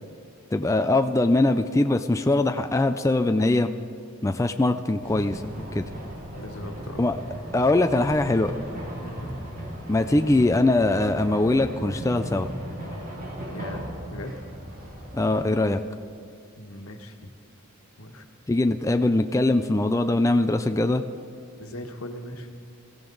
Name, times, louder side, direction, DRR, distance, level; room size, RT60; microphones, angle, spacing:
voice 1, 0.5-3.7 4.2-5.4 5.7-5.9 7.0-7.1 7.5-8.5 9.9-12.5 15.1-15.8 18.5-21.0, left 2 dB, 15° left, 7 dB, 0.4 m, -22 dB
sound 1, 5.0-15.4, equal, 40° right, 2.2 m, -36 dB
voice 2, 6.4-7.0 9.0-9.3 13.5-14.3 16.6-17.3 18.0-18.3 21.6-22.5, left 1 dB, 85° left, 5 dB, 1.4 m, -39 dB
22.0 x 15.5 x 3.9 m, 2.3 s
head